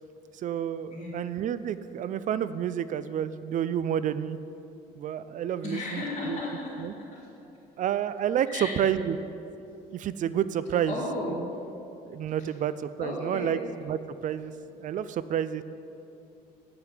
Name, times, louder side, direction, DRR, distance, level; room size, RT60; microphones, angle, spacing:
voice 1, 0.3-4.4 5.0-6.4 6.8-6.9 7.8-9.2 9.9-11.0 12.1-13.6 13.9-14.5 14.8-15.6, right 9 dB, 50° right, 14 dB, 0.4 m, -29 dB
voice 2, 5.6-7.3 8.5-8.9 10.8-11.5 13.0-13.6, left 2 dB, 35° left, -9 dB, 2.2 m, -34 dB
8.7 x 5.9 x 8.0 m, 2.8 s
cardioid pair, 110°, 17 cm